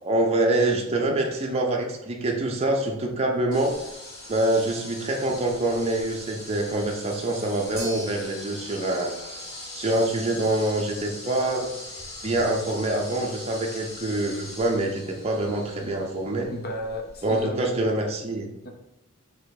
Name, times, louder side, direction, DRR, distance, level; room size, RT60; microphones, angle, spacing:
voice 1, 0.0-3.7 4.3-9.1 9.7-11.7 12.2-16.5 17.2-18.5, right 2 dB, 30° right, 1 dB, 0.5 m, -25 dB
sound 1, 3.5-17.4, left 1 dB, 75° left, 1.6 m, -41 dB
sound 2, 7.8-16.1, right 2 dB, 5° right, 1.1 m, -47 dB
voice 2, 16.5-17.7 18.6-18.7, equal, 45° left, 3 dB, 0.7 m, -33 dB
4.4 x 2.8 x 4.0 m, 0.88 s
head